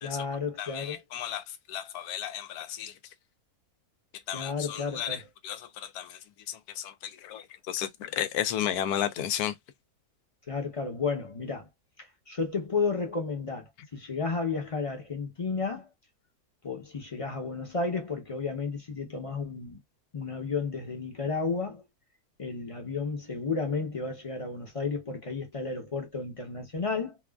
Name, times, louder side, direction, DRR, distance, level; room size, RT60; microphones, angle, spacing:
voice 1, 0.0-1.0 4.3-5.3 10.5-11.7 12.3-15.9 16.6-19.8 20.1-21.8 22.4-27.2, left 4 dB, 30° left, 0.6 m, -32 dB
voice 2, 0.6-1.4 1.7-2.9 4.3-5.2 5.4-6.2 6.5-9.5, left 10 dB, 85° left, 1.1 m, -33 dB
2.9 x 2.3 x 2.3 m
omnidirectional pair, 1.6 m